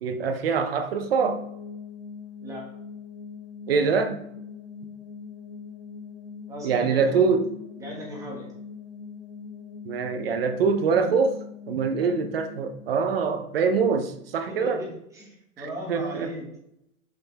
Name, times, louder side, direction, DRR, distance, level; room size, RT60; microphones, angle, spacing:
voice 1, 0.0-1.4 3.7-4.2 6.6-7.5 9.8-11.4 11.7-14.8 15.9-16.4, right 5 dB, 45° right, 0.7 m, -24 dB
sound 1, 1.2-14.1, left 6 dB, 15° left, 1.1 m, -42 dB
voice 2, 6.5-7.2 7.8-8.5 11.9-12.1 14.5-14.9 15.1-16.4, equal, 5° right, 1.3 m, -37 dB
5.9 x 5.3 x 4.1 m
hypercardioid pair, 165°, 43 cm